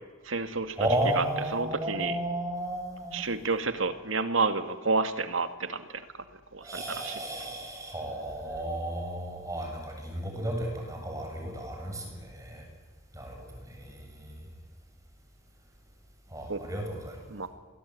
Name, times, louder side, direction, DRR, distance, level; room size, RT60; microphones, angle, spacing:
voice 1, 0.2-0.9 1.1-2.2 3.1-5.9 6.5-7.2 16.5-16.6 17.3-17.5, right 4 dB, 85° right, 10 dB, 2.2 m, -30 dB
voice 2, 0.8-3.2 6.6-12.6 13.1-13.4 13.7-14.3 16.3-17.2, right 1 dB, 15° right, 2 dB, 7.8 m, -33 dB
28.0 x 21.0 x 9.7 m, 1.4 s
head